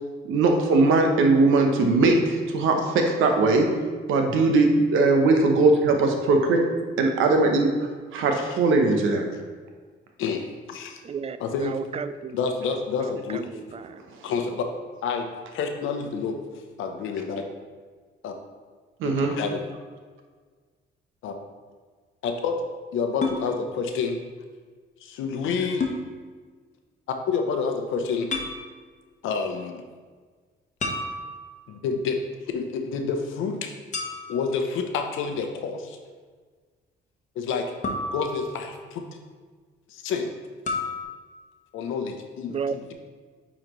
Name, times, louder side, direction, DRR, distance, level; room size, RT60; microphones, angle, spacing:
voice 1, 0.2-3.7 4.1-6.6 7.0-7.7 8.1-9.2 19.0-19.3, right 3 dB, 85° right, 4 dB, 0.9 m, -20 dB
voice 2, 10.2-11.0 11.4-11.8 12.3-13.5 14.2-14.6 15.0-16.4 16.8-17.4 18.2-18.3 19.0-19.6 21.2-21.3 22.2-22.6 22.9-24.2 25.0-25.9 27.3-28.3 29.2-29.8 31.7-32.2 32.5-33.7 34.3-36.0 37.4-37.7 38.0-39.1 39.9-40.3 41.7-42.9, left 5 dB, 85° left, 5 dB, 0.8 m, -28 dB
voice 3, 11.0-11.4 11.6-12.4 13.1-13.8 42.5-42.7, right 6 dB, 30° right, 12 dB, 0.4 m, -32 dB
sound 1, 23.2-23.4 25.8-26.0 28.3-28.6 30.8-31.7 33.9-34.5 37.8-38.8 40.7-41.0, left 3 dB, 35° left, 1.0 m, -30 dB
9.0 x 4.1 x 3.1 m, 1.5 s
cardioid pair, 90°, 20 cm